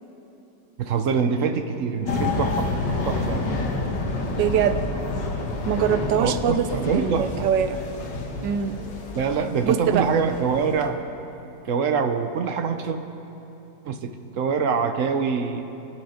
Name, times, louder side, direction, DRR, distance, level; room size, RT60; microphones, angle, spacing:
voice 1, 0.8-2.8 3.0-3.4 6.2-7.5 9.1-11.0 11.6-13.0 13.8-15.6, right 5 dB, 60° right, 8 dB, 0.9 m, -25 dB
sound 1, 2.0-10.9, left 2 dB, 80° left, 2.0 m, -29 dB
voice 2, 4.4-4.8 5.7-6.7 6.9-7.8 8.4-8.8 9.4-10.1, right 8 dB, 85° right, 10 dB, 1.4 m, -23 dB
24.5 x 8.7 x 5.0 m, 3.0 s
omnidirectional pair, 1.9 m